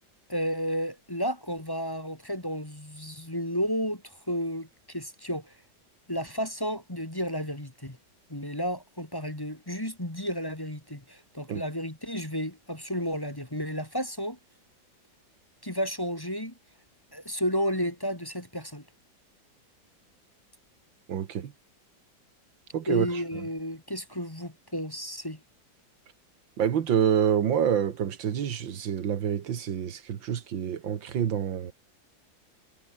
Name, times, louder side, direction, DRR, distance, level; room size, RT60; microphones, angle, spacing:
voice 1, 0.3-5.5 6.1-8.0 8.3-14.4 15.6-16.5 17.1-18.8 22.9-25.4, equal, 10° left, 2.4 m, -32 dB
voice 2, 21.1-21.5 22.7-23.5 26.6-31.7, right 9 dB, 80° right, 2.1 m, -27 dB
omnidirectional pair, 2.1 m